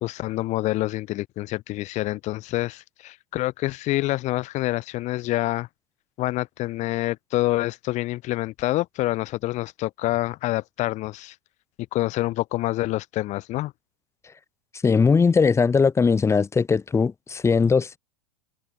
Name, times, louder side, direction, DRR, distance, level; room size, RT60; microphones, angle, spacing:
voice 1, 0.0-5.7 6.2-11.3 11.9-13.7, left 17 dB, 35° left, 1.6 m, -27 dB
voice 2, 14.8-18.0, left 5 dB, 15° left, 3.9 m, -20 dB
hypercardioid pair, 130°, 21 cm